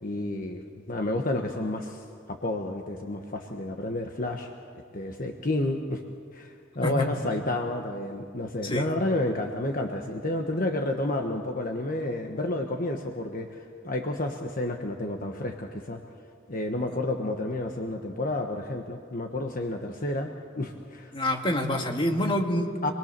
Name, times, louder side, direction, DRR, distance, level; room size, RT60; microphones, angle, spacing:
voice 1, 0.0-4.5 4.9-6.0 6.3-16.0 16.5-20.3 20.6-21.1 22.8-22.9, left 1 dB, 45° left, 3 dB, 1.2 m, -30 dB
voice 2, 21.1-22.9, left 1 dB, 25° left, 2 dB, 1.8 m, -27 dB
26.0 x 21.0 x 6.8 m, 2.3 s
head